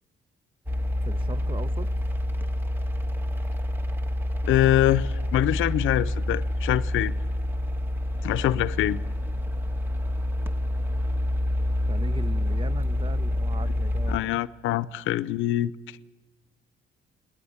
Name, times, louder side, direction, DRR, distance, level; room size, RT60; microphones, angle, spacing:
sound 1, 0.7-14.2, left 1 dB, 10° right, 1.3 m, -27 dB
voice 1, 1.1-1.9 11.9-14.4, right 4 dB, 25° right, 0.7 m, -38 dB
voice 2, 4.4-7.1 8.2-9.0 14.1-15.7, left 14 dB, 85° left, 0.7 m, -24 dB
20.0 x 20.0 x 8.7 m
cardioid pair, 90°, 20 cm